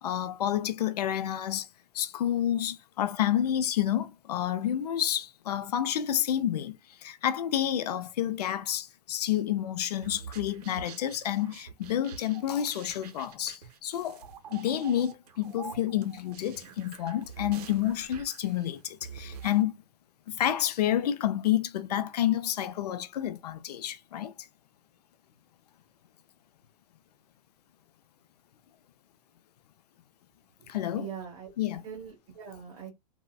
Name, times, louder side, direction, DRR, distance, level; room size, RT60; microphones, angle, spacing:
voice 1, 0.0-1.7 1.9-6.8 7.0-14.2 14.5-19.7 20.3-24.3 30.7-31.1 31.6-31.9, left 11 dB, 90° left, 0.5 m, -29 dB
sound 1, 10.0-19.6, right 7 dB, 90° right, 0.7 m, -46 dB
voice 2, 31.0-31.5 31.8-32.9, right 7 dB, 30° right, 1.1 m, -41 dB
3.6 x 2.1 x 2.3 m
supercardioid pair, 140°, 20 cm